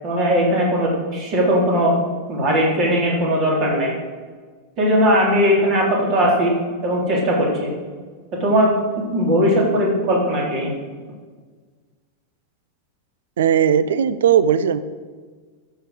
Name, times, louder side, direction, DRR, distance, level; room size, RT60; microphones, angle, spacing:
voice 1, 0.0-1.9 2.3-3.9 4.8-6.5 6.8-7.7 8.4-8.7 9.1-10.7, equal, 35° right, -3 dB, 3.6 m, -18 dB
voice 2, 13.4-14.8, right 8 dB, 60° right, 14 dB, 0.5 m, -17 dB
13.5 x 5.7 x 6.4 m, 1.5 s
figure-of-eight pair, 90°, 0 cm